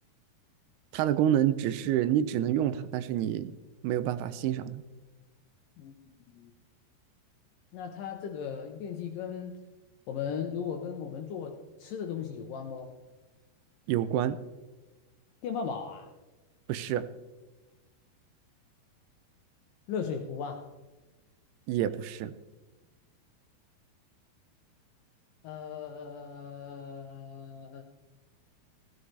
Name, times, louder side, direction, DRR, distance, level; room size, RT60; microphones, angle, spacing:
voice 1, 0.9-3.5 3.8-4.8 13.9-14.4 16.7-17.0 21.7-22.3, right 11 dB, 80° right, 13 dB, 2.5 m, -28 dB
voice 2, 5.8-6.5 7.7-9.6 10.1-13.0 15.4-16.1 19.9-20.7 25.4-27.8, left 7 dB, 75° left, 5 dB, 2.1 m, -37 dB
14.5 x 14.0 x 3.3 m, 1.2 s
omnidirectional pair, 4.7 m